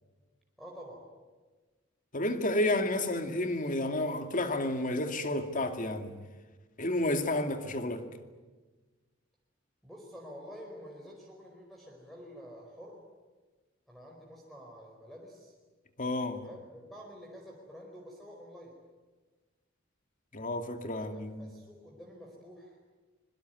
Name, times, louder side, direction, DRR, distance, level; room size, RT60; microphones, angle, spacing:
voice 1, 0.6-1.1 9.8-13.0 13.9-15.5 16.3-18.8 21.1-22.8, equal, ahead, 4.8 m, -49 dB
voice 2, 2.1-6.2 6.8-8.0 16.0-16.4 20.3-21.5, left 1 dB, 40° left, 2.5 m, -31 dB
26.0 x 23.0 x 9.3 m
head